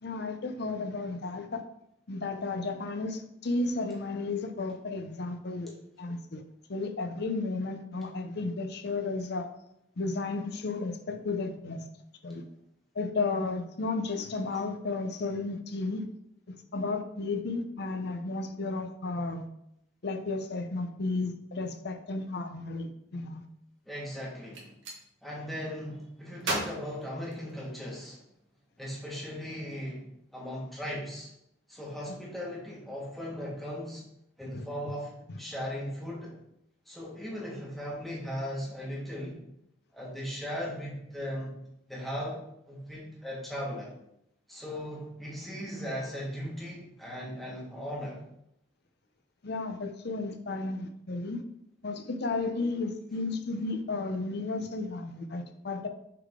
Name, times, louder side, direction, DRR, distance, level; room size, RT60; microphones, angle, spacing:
voice 1, 0.0-1.6 2.1-6.4 6.7-9.5 10.0-11.8 12.2-12.4 12.9-16.0 16.5-19.5 20.0-23.5 34.5-34.6 35.3-35.4 49.4-51.4 51.8-55.9, left 3 dB, 60° left, 6 dB, 0.7 m, -33 dB
voice 2, 23.8-24.7 25.2-28.2 28.8-31.3 31.7-34.0 34.4-36.4 36.8-39.4 39.9-41.5 41.9-43.9 44.5-48.2, equal, ahead, -5 dB, 1.6 m, -38 dB
Gunshot gunfire, 24.3-25.0 26.4-27.9, right 2 dB, 80° right, 1.4 m, -36 dB
6.6 x 3.8 x 3.7 m, 0.77 s
head